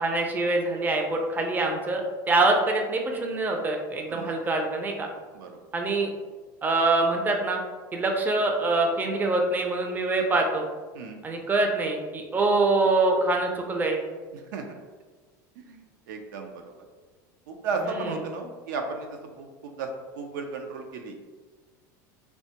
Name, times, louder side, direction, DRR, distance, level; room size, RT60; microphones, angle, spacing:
voice 1, 0.0-5.1 5.7-6.1 6.6-7.6 7.9-10.7 11.2-14.0, right 2 dB, 15° right, 2 dB, 0.4 m, -24 dB
voice 2, 14.3-14.8 15.6-16.6 17.5-19.9 20.2-21.2, right 4 dB, 80° right, 4 dB, 0.4 m, -34 dB
2.7 x 2.2 x 2.8 m, 1.4 s
hypercardioid pair, 100°, 10 cm